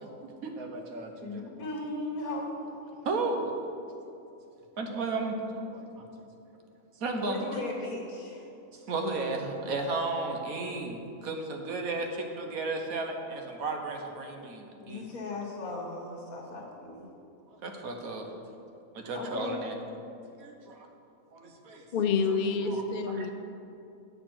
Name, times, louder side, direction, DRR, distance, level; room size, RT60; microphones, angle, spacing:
voice 1, 0.0-1.4 3.0-3.5 4.8-6.1 7.0-7.4 8.7-15.1 17.5-18.2 18.9-19.7 20.4-20.9 21.3-21.8 22.6-22.8 23.1-23.2, right 3 dB, 75° right, 3 dB, 1.4 m, -34 dB
voice 2, 1.2-2.5 7.2-8.4 14.8-17.1 19.1-19.6, left 2 dB, 80° left, -2 dB, 1.7 m, -37 dB
voice 3, 21.9-23.3, left 5 dB, 60° left, 6 dB, 0.5 m, -28 dB
8.4 x 6.6 x 6.0 m, 2.7 s
omnidirectional pair, 1.5 m